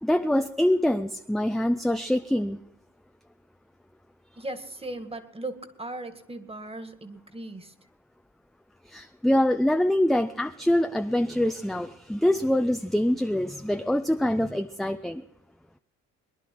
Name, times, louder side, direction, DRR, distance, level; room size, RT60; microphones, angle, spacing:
voice 1, 0.0-2.6 8.9-15.2, left 1 dB, ahead, 7 dB, 0.6 m, -24 dB
voice 2, 4.4-7.7, right 2 dB, 20° right, 10 dB, 2.0 m, -38 dB
22.5 x 10.5 x 4.6 m, 0.76 s
cardioid pair, 90°, 30 cm